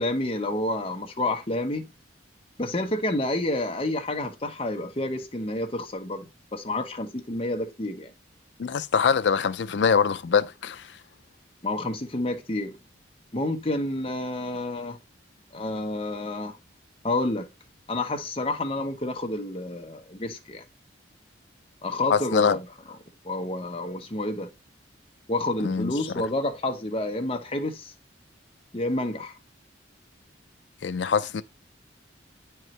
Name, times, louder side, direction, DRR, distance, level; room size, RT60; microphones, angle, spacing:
voice 1, 0.0-1.9 2.6-8.1 11.6-12.8 13.3-15.0 15.5-16.6 17.0-17.5 17.9-20.6 21.8-22.7 23.2-24.5 25.3-27.9 28.7-29.3, left 1 dB, 30° left, 1.0 m, -29 dB
voice 2, 8.6-10.8 22.1-22.6 25.6-25.9 30.8-31.4, left 6 dB, 70° left, 0.4 m, -23 dB
9.0 x 4.6 x 3.2 m
head